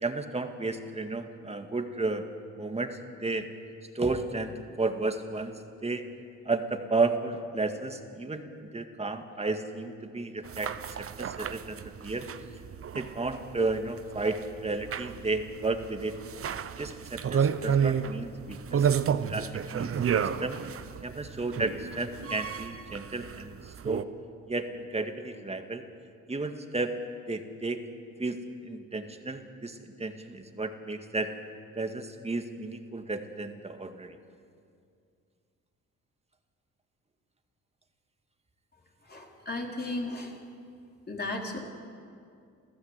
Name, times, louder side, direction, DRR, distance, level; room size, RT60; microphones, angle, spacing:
voice 1, 0.0-2.3 2.6-3.5 3.9-5.5 5.8-6.0 6.5-10.7 11.0-12.3 12.9-16.2 16.8-18.9 19.3-20.6 21.0-24.1 24.5-25.8 26.3-26.9 27.3-27.8 28.2-31.3 31.7-34.2, right 3 dB, 20° right, 6 dB, 2.0 m, -33 dB
sound 1, 10.4-24.0, right 7 dB, 50° right, 0.9 m, -32 dB
voice 2, 39.1-40.3 41.1-41.6, left 2 dB, 35° left, 0 dB, 4.1 m, -35 dB
28.5 x 15.0 x 8.3 m, 2.4 s
cardioid pair, 90°, 30 cm